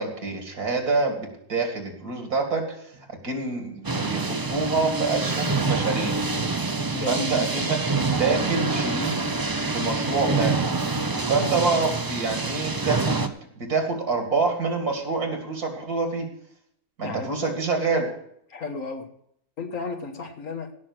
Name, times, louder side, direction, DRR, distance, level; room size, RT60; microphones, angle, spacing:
voice 1, 0.0-6.2 7.1-7.8 8.1-9.2 9.7-10.6 11.3-16.3 17.0-18.1, right 4 dB, 70° right, 3 dB, 2.8 m, -26 dB
sound 1, 3.8-13.3, right 3 dB, 35° right, 0.3 m, -26 dB
voice 2, 6.9-7.5 11.4-11.8 17.0-17.5 18.5-19.1 19.6-20.7, left 3 dB, 60° left, 5 dB, 1.7 m, -33 dB
16.5 x 6.4 x 6.1 m, 0.69 s
omnidirectional pair, 1.6 m